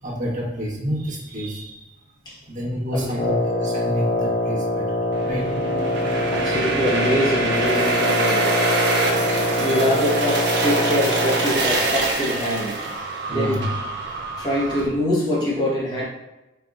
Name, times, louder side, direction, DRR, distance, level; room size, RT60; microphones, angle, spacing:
voice 1, 0.0-1.9 2.4-5.6 8.9-9.2 9.5-9.9 13.3-13.7, equal, 45° right, -5 dB, 1.3 m, -29 dB
voice 2, 2.2-3.2 6.3-8.6 9.4-13.7 14.4-16.0, equal, 20° left, -5 dB, 1.3 m, -25 dB
Wind instrument woodwind instrument, 3.1-11.7, left 1 dB, 40° left, 0.4 m, -24 dB
sound 1, 5.1-14.9, right 3 dB, 60° right, 0.7 m, -25 dB
4.5 x 3.4 x 2.4 m, 0.98 s
head